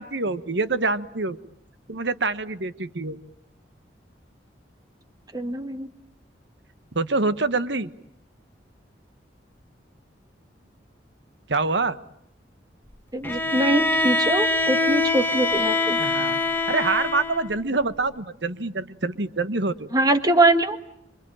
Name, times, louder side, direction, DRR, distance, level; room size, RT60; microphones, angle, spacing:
voice 1, 0.0-1.4 1.9-3.2 6.9-7.9 11.5-12.0 16.0-16.4 16.7-19.9, right 3 dB, 75° right, 12 dB, 1.3 m, -25 dB
voice 2, 5.3-5.9 13.1-16.0 19.9-20.8, right 2 dB, 20° right, 8 dB, 1.6 m, -22 dB
Bowed string instrument, 13.2-17.5, left 2 dB, 10° left, 1.5 m, -24 dB
27.0 x 25.0 x 8.8 m, 0.75 s
head